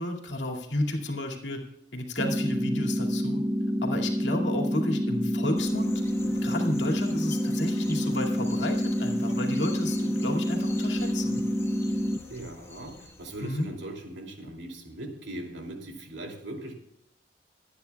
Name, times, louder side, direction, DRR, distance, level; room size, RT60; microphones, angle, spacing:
voice 1, 0.0-1.6 1.9-3.4 3.8-11.5 13.4-13.7, left 1 dB, 75° left, 2 dB, 2.2 m, -32 dB
sound 1, 2.2-12.2, equal, 10° right, 0.5 m, -28 dB
sound 2, 5.5-13.7, left 3 dB, 15° left, 1.3 m, -46 dB
voice 2, 12.3-16.8, right 1 dB, 75° right, 2 dB, 2.7 m, -40 dB
24.5 x 9.5 x 2.3 m, 0.78 s
head